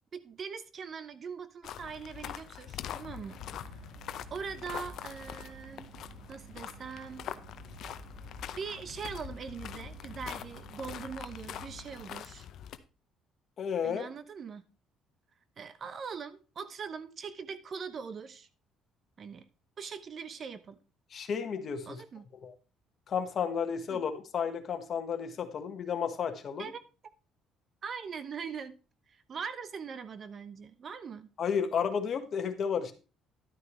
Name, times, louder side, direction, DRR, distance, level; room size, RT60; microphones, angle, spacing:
voice 1, 0.1-3.4 4.3-5.9 6.3-7.2 8.6-12.5 13.8-14.6 15.6-18.5 19.2-19.4 19.8-20.8 21.9-22.3 23.9-24.0 26.6-26.8 27.8-28.8 29.1-31.3, right 6 dB, 40° right, 13 dB, 0.8 m, -41 dB
sound 1, 1.6-12.8, left 10 dB, 65° left, 0.7 m, -44 dB
sound 2, 3.1-12.1, right 6 dB, 65° right, 1.7 m, -52 dB
voice 2, 13.6-14.1 21.1-22.0 22.4-22.5 23.1-26.7 31.4-32.9, left 7 dB, 50° left, 8 dB, 1.4 m, -32 dB
11.5 x 9.3 x 3.2 m, 0.33 s
cardioid pair, 110°, 0 cm